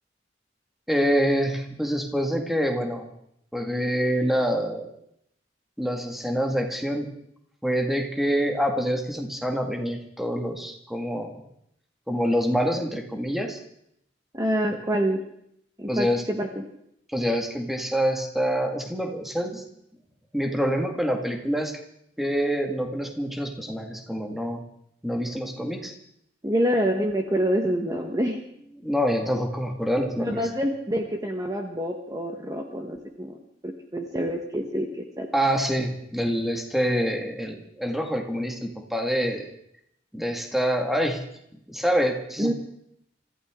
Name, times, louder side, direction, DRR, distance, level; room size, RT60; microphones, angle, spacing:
voice 1, 0.9-3.1 3.5-4.9 5.8-7.1 7.6-11.4 12.1-13.6 15.9-16.2 17.1-19.6 20.3-21.8 22.2-24.6 25.0-25.9 28.8-30.5 35.3-39.5 40.1-41.2 41.7-42.5, equal, ahead, 2 dB, 2.0 m, -26 dB
voice 2, 14.3-15.2 15.8-16.6 26.4-28.4 30.2-33.4 33.6-35.3 42.4-42.5, equal, 20° right, 2 dB, 1.4 m, -26 dB
25.0 x 15.0 x 3.8 m, 0.73 s
head